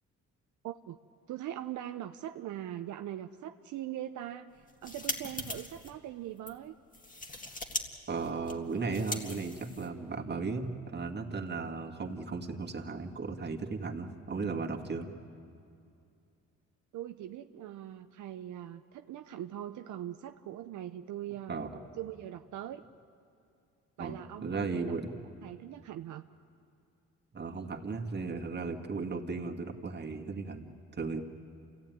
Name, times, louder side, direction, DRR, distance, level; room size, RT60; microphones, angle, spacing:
voice 1, 0.6-1.0 1.3-6.7 16.9-21.6 22.0-22.8 24.0-24.9 25.4-26.2, right 12 dB, 75° right, 7 dB, 0.7 m, -41 dB
sound 1, 4.6-5.9 6.4-6.5 6.9-7.8 8.1-10.1, left 2 dB, 25° left, 2.1 m, -40 dB
voice 2, 8.1-15.1 21.5-21.7 24.0-25.1 27.3-31.2, right 4 dB, 35° right, 3 dB, 2.1 m, -36 dB
28.5 x 15.5 x 9.4 m, 2.5 s
cardioid pair, 90°, 30 cm